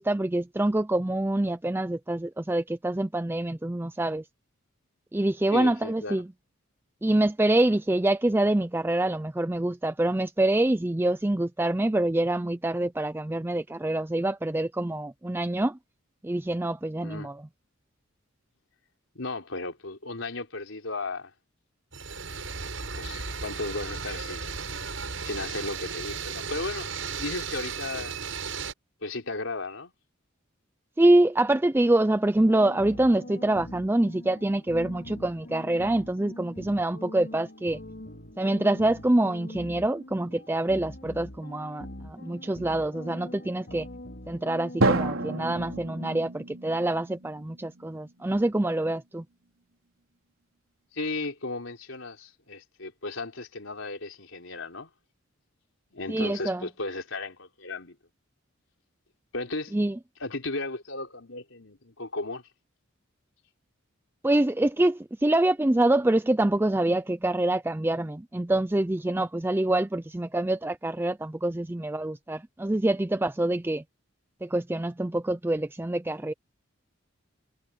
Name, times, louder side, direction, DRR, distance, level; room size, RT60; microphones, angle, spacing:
voice 1, 0.0-4.2 5.1-6.3 7.0-15.8 16.2-17.4 31.0-37.8 38.4-43.9 44.3-49.2 56.1-56.7 59.7-60.0 64.2-73.8 74.4-76.3, right 1 dB, 10° right, 0.4 m, -25 dB
voice 2, 5.5-6.2 17.0-17.3 19.2-21.3 23.0-24.5 25.2-26.9 27.2-28.2 29.0-29.9 50.9-54.9 55.9-58.0 59.3-59.8 60.2-62.4, left 2 dB, 75° left, 3.8 m, -35 dB
sound 1, 21.9-28.7, right 5 dB, 70° right, 7.4 m, -35 dB
sound 2, 32.4-46.2, left 1 dB, 55° left, 5.3 m, -43 dB
Drum, 44.8-48.5, right 2 dB, 90° right, 3.8 m, -30 dB
head